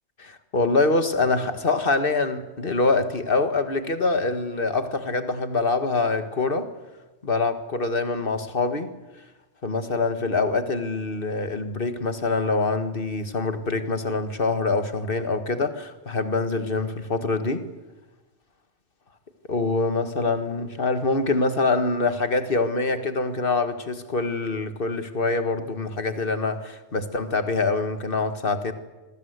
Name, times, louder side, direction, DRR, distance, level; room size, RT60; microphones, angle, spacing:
voice 1, 0.2-6.7 7.2-8.9 9.6-17.7 19.5-28.7, left 3 dB, 45° left, 9 dB, 1.8 m, -25 dB
26.0 x 20.0 x 8.1 m, 1.1 s
omnidirectional pair, 1.3 m